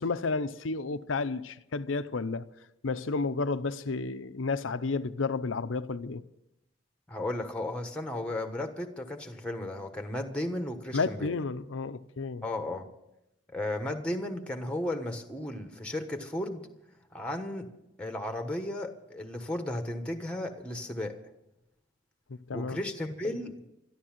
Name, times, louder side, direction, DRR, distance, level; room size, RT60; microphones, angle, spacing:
voice 1, 0.0-2.5 2.8-6.2 10.9-12.5 22.5-22.8, left 4 dB, 85° left, 0.6 m, -31 dB
voice 2, 7.1-11.3 12.4-12.9 13.5-16.7 17.1-17.7 18.0-21.2 22.5-23.7, left 1 dB, 5° left, 1.3 m, -34 dB
12.5 x 12.5 x 7.4 m
head